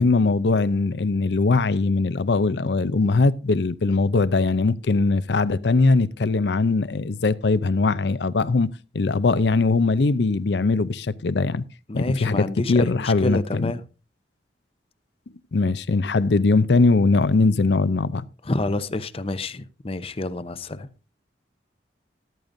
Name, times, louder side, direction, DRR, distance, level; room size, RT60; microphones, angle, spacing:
voice 1, 0.0-8.7 8.9-11.6 11.9-13.7 15.5-18.2, left 3 dB, 70° left, 0.6 m, -21 dB
voice 2, 11.9-13.8 18.4-20.9, left 2 dB, 35° left, 0.7 m, -28 dB
14.0 x 13.0 x 2.6 m
head